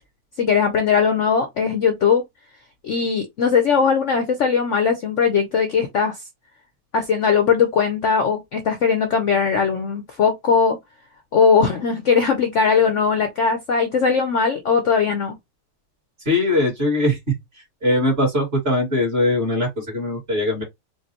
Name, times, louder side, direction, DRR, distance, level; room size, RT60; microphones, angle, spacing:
voice 1, 0.4-2.2 2.8-6.2 6.9-10.8 11.3-15.4, left 6 dB, 60° left, 0.8 m, -19 dB
voice 2, 16.2-17.2 17.5-20.6, left 1 dB, 35° right, 2.2 m, -21 dB
4.6 x 2.5 x 2.8 m
omnidirectional pair, 1.9 m